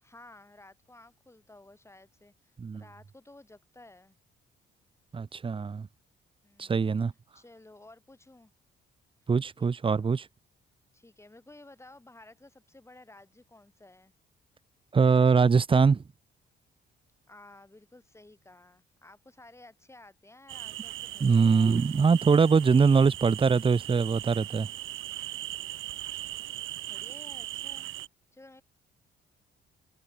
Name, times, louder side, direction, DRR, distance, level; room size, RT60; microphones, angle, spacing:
voice 1, 0.0-4.2 6.4-8.5 9.6-10.1 10.9-14.1 17.3-21.8 26.9-27.9 28.3-28.6, left 2 dB, 15° left, 5.8 m, -54 dB
voice 2, 5.1-5.9 6.6-7.1 9.3-10.2 14.9-16.0 21.2-24.7, right 5 dB, 25° right, 0.7 m, -22 dB
sound 1, 20.5-28.1, right 14 dB, 85° right, 3.2 m, -39 dB
cardioid pair, 90°, 20 cm